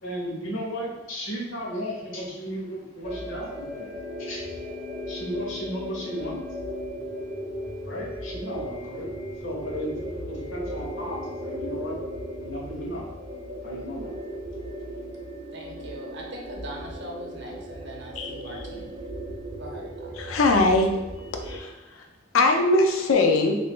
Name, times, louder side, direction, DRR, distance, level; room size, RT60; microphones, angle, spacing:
voice 1, 0.0-4.5 5.1-6.4 7.8-9.1 9.4-12.0 12.4-13.1 13.6-14.1, equal, 70° left, -3 dB, 1.0 m, -34 dB
sound 1, 3.0-21.6, equal, 30° right, 0.5 m, -36 dB
voice 2, 15.5-18.9 19.6-20.3, right 1 dB, 60° right, 0 dB, 0.7 m, -41 dB
voice 3, 20.2-20.9 21.3-22.0 22.3-23.5, left 2 dB, 90° left, 3 dB, 0.5 m, -21 dB
3.3 x 2.6 x 3.5 m, 1.1 s
head